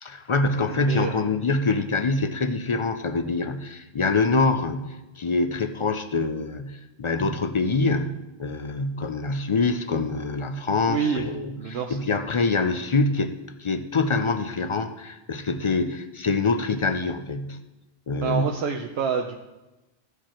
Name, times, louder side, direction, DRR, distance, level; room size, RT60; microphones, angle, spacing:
voice 1, 0.0-13.3 13.6-17.6 18.1-18.5, left 3 dB, 45° left, 9 dB, 0.4 m, -25 dB
voice 2, 0.7-1.3 10.9-11.3 11.6-12.0 18.2-19.4, right 7 dB, 75° right, 3 dB, 0.9 m, -27 dB
15.0 x 5.0 x 4.3 m, 1.0 s
omnidirectional pair, 1.1 m